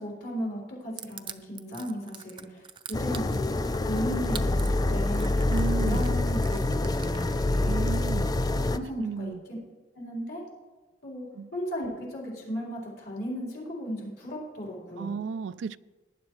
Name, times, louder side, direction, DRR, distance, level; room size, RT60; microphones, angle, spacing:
voice 1, 0.0-3.5 3.9-5.4 5.8-7.9 8.5-9.3 9.9-10.4 11.0-11.2 11.5-15.1, equal, 60° left, 4.3 m, -35 dB
Crushing, 1.0-7.7, right 7 dB, 25° right, 0.6 m, -43 dB
sound 1, 2.9-8.8, left 2 dB, 20° left, 0.4 m, -26 dB
voice 2, 5.5-6.1 7.6-8.3 9.0-9.4 11.3-11.5 15.0-15.8, right 5 dB, 80° right, 0.3 m, -33 dB
18.5 x 10.5 x 3.2 m
head